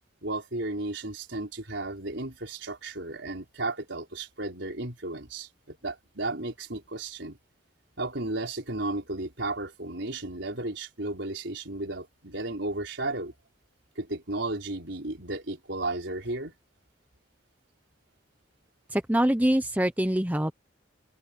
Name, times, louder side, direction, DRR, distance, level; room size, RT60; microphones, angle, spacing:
voice 1, 0.2-7.4 8.0-13.3 14.0-16.5, right 2 dB, 65° right, 4.8 m, -34 dB
voice 2, 18.9-20.5, right 1 dB, 10° right, 1.0 m, -24 dB
head